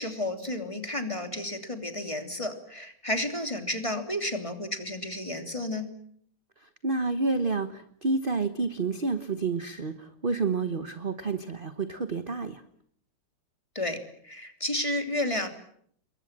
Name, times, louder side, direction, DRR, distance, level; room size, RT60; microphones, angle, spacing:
voice 1, 0.0-5.9 13.7-14.0 14.2-15.5, left 1 dB, 15° left, 6 dB, 3.0 m, -31 dB
voice 2, 6.6-12.6, right 3 dB, 30° right, 11 dB, 1.1 m, -29 dB
29.0 x 22.5 x 7.5 m, 0.65 s
omnidirectional pair, 2.4 m